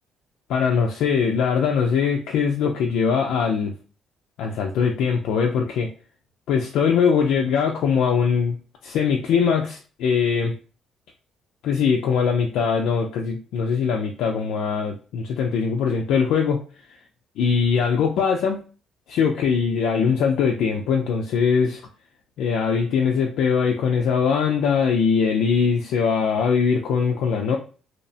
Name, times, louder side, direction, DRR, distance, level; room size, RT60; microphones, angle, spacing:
voice 1, 0.5-3.7 4.4-5.9 6.5-8.6 8.8-10.5 11.6-16.6 17.4-18.6 19.1-21.8 22.4-27.6, left 6 dB, 80° left, 1 dB, 0.4 m, -21 dB
2.8 x 2.0 x 2.7 m, 0.36 s
cardioid pair, 140°, 0 cm